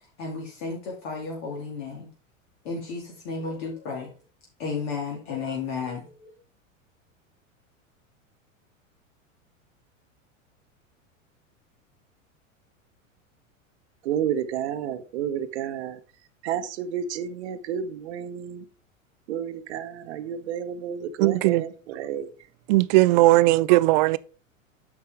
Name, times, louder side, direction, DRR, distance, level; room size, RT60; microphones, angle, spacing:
voice 1, 0.2-2.1 2.6-4.1 4.6-6.4, left 4 dB, 55° left, 2.3 m, -33 dB
voice 2, 14.0-16.0 16.4-18.6 19.3-22.3 23.1-23.2, right 9 dB, 55° right, 1.0 m, -31 dB
voice 3, 21.2-21.6 22.7-24.2, right 19 dB, 35° right, 0.4 m, -18 dB
8.4 x 6.6 x 3.4 m
figure-of-eight pair, 85°, 40 cm